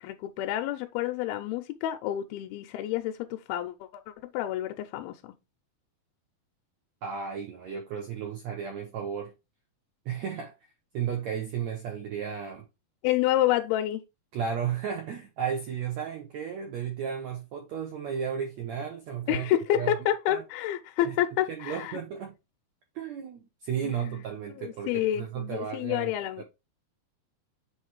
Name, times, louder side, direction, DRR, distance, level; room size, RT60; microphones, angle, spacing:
voice 1, 0.0-5.2 13.0-14.0 19.3-22.0 23.8-24.1 24.6-26.4, left 12 dB, 90° left, 2.5 m, -29 dB
voice 2, 7.0-9.3 10.1-10.7 10.9-12.6 14.3-20.0 20.3-20.4 21.1-21.2 21.5-22.3 23.0-26.1 26.4-26.5, right 7 dB, 70° right, 1.7 m, -34 dB
7.9 x 3.2 x 4.5 m
omnidirectional pair, 4.3 m